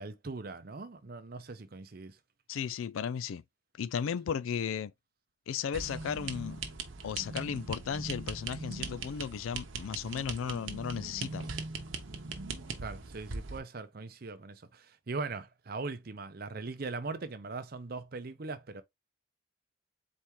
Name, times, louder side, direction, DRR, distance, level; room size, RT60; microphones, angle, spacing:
voice 1, 0.0-2.2 12.8-18.8, right 3 dB, 50° right, 0.6 m, -40 dB
voice 2, 2.5-3.4 3.8-4.9 5.5-6.6 7.0-11.5, left 7 dB, 80° left, 0.3 m, -35 dB
sound 1, 5.7-13.6, right 4 dB, 75° right, 0.9 m, -40 dB
4.3 x 3.5 x 3.0 m
head